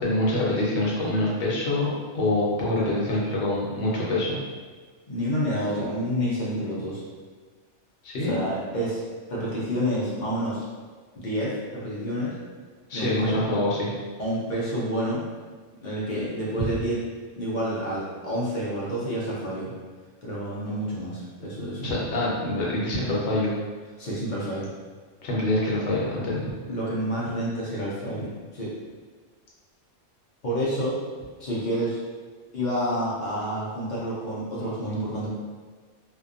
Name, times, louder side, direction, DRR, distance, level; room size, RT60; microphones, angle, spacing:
voice 1, 0.0-1.9 2.1-4.4 8.0-8.4 12.9-13.9 21.8-23.5 25.2-26.5, left 1 dB, 65° left, -5 dB, 1.0 m, -25 dB
voice 2, 5.1-7.0 8.2-9.0 9.3-10.6 11.2-12.4 12.9-13.4 14.2-15.2 15.8-17.0 17.4-19.7 20.2-21.9 24.0-24.7 26.7-28.7 30.4-31.0 31.4-32.0 32.5-35.3, equal, 50° left, -7 dB, 0.6 m, -29 dB
2.7 x 2.2 x 2.4 m, 1.5 s
omnidirectional pair, 1.3 m